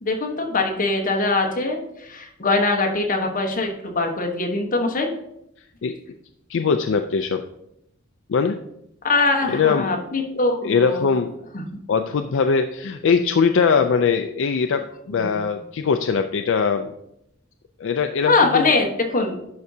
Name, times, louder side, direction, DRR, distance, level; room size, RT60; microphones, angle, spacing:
voice 1, 0.0-5.1 9.0-11.0 11.5-11.6 15.1-15.5 18.2-19.4, left 3 dB, 40° left, 2 dB, 1.1 m, -22 dB
voice 2, 6.5-7.4 8.3-8.6 9.5-9.9 10.6-11.3 11.9-16.9 17.8-18.7, left 5 dB, 65° left, 6 dB, 0.4 m, -21 dB
11.0 x 5.9 x 2.7 m, 0.80 s
head